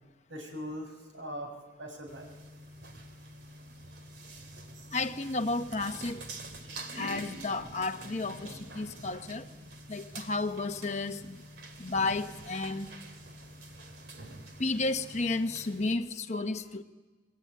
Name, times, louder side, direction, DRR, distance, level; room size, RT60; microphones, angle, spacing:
voice 1, 0.3-2.3 4.5-4.7, equal, 85° right, 6.5 m, -41 dB
sound 1, 2.1-16.0, right 1 dB, 60° right, 2.8 m, -46 dB
voice 2, 4.9-6.2 7.0-9.4 9.9-11.4 11.8-12.9 14.6-16.8, left 3 dB, 35° left, 1.1 m, -32 dB
27.5 x 22.0 x 9.5 m
head